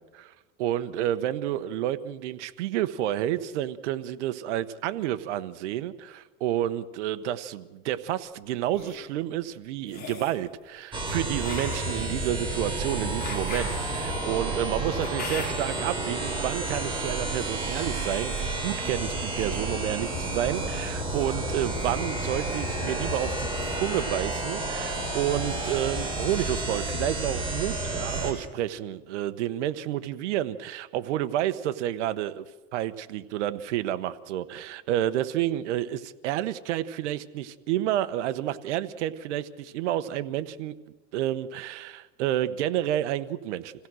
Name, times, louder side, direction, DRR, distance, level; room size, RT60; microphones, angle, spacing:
voice 1, 0.6-23.5 23.8-32.4 32.7-40.7 41.1-43.7, right 12 dB, 80° right, 12 dB, 1.2 m, -30 dB
sound 1, 8.5-9.0 9.8-10.4 11.4-15.8, left 4 dB, 25° left, 5.3 m, -40 dB
sound 2, 10.9-28.3, right 2 dB, 15° right, 4.5 m, -31 dB
26.5 x 16.0 x 6.3 m, 1.2 s
supercardioid pair, 125°, 35 cm